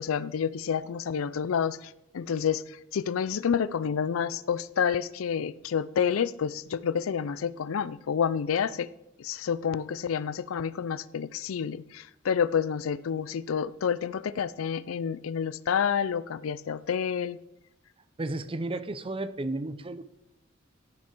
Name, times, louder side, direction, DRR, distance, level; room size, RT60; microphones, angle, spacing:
voice 1, 0.0-8.9 9.2-17.4, left 7 dB, 85° left, 18 dB, 0.4 m, -29 dB
voice 2, 18.2-20.0, right 2 dB, 25° right, 13 dB, 0.5 m, -33 dB
14.5 x 6.0 x 4.4 m, 0.84 s
head